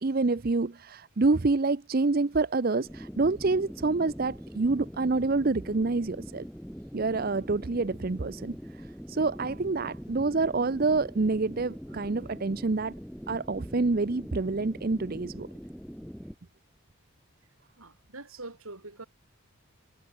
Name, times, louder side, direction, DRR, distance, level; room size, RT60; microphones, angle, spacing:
voice 1, 0.0-6.5 6.9-12.9 13.3-15.5, right 3 dB, 45° right, 0.6 m, -27 dB
sound 1, 2.8-16.4, equal, ahead, 2.4 m, -43 dB
voice 2, 17.8-19.1, right 2 dB, 80° right, 5.1 m, -43 dB
head